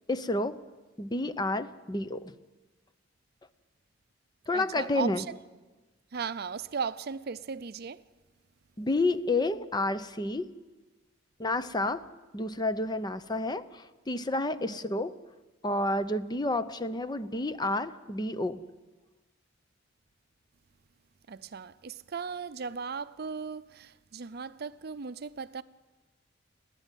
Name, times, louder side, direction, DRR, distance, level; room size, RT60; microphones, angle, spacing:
voice 1, 0.1-0.6 1.0-2.3 4.5-5.2 8.8-10.5 11.4-12.0 12.3-15.1 15.6-18.6, left 2 dB, 20° left, 0.7 m, -30 dB
voice 2, 4.5-5.4 6.1-8.0 14.6-14.9 21.3-25.6, right 5 dB, 55° right, 0.5 m, -37 dB
29.5 x 9.9 x 9.1 m
head